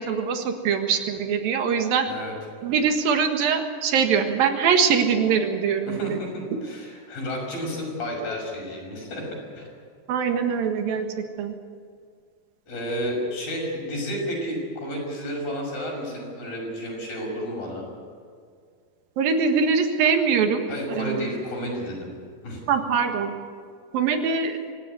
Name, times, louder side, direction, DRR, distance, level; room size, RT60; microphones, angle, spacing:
voice 1, 0.0-2.1 2.6-6.2 10.1-11.1 11.4-11.5 19.2-21.4 22.7-23.3 23.9-24.6, right 6 dB, 80° right, 6 dB, 3.5 m, -23 dB
voice 2, 5.9-9.7 12.7-17.9 20.7-22.1 22.4-22.6, equal, 80° left, 0 dB, 7.8 m, -31 dB
25.0 x 16.5 x 9.5 m, 2.1 s
omnidirectional pair, 4.1 m